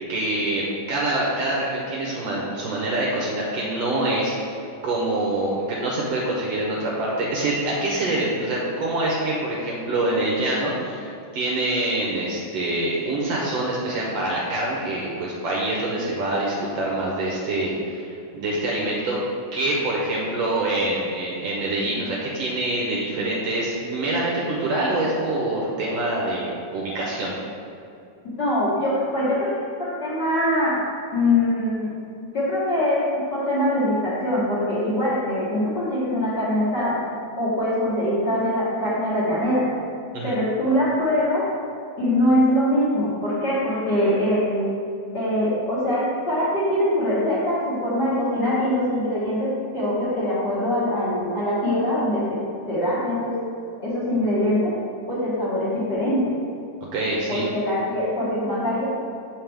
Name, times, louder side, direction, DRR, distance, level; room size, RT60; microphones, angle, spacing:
voice 1, 0.1-11.1 11.3-19.2 19.5-27.3 40.1-40.3 56.9-57.5, right 2 dB, 70° right, -4 dB, 1.7 m, -25 dB
voice 2, 28.4-30.8 31.1-31.9 32.3-37.0 37.4-39.6 40.2-41.4 42.0-44.7 45.1-52.4 52.7-53.3 53.8-54.7 55.1-56.4 57.3-58.9, left 1 dB, 45° left, -10 dB, 1.5 m, -23 dB
7.4 x 5.7 x 3.4 m, 2.6 s
omnidirectional pair, 3.5 m